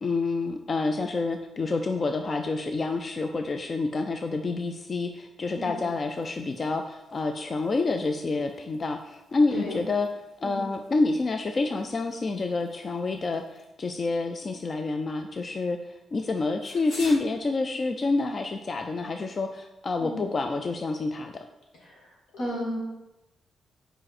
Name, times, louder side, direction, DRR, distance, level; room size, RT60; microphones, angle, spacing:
voice 1, 0.0-10.1 10.4-21.4, left 3 dB, 35° left, 6 dB, 0.3 m, -28 dB
sound 1, 5.4-17.2, left 2 dB, 60° left, 1.1 m, -53 dB
voice 2, 5.6-5.9 9.5-9.9 10.4-10.7 20.0-20.3 21.8-22.8, left 1 dB, 80° left, -2 dB, 1.9 m, -34 dB
5.2 x 4.9 x 4.1 m, 0.94 s
wide cardioid pair, 135°, 0 cm